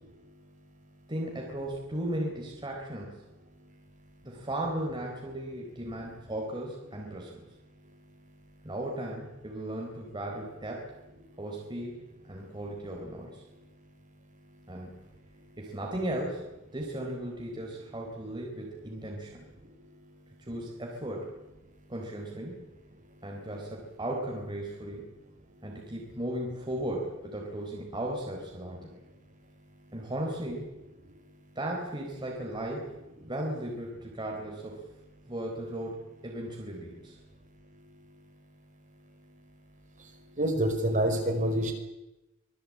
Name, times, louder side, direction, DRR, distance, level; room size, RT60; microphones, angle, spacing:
voice 1, 1.1-3.3 4.2-7.4 8.6-10.9 11.4-13.4 14.7-15.0 15.6-19.4 20.4-21.3 21.9-22.7 23.2-25.0 25.6-28.9 29.9-30.7 31.6-32.9 33.2-34.9 35.3-36.0 36.2-37.2, right 1 dB, 20° right, -1 dB, 4.3 m, -36 dB
voice 2, 40.4-41.7, right 1 dB, 40° right, 2 dB, 5.5 m, -26 dB
26.5 x 19.5 x 8.8 m, 0.97 s
head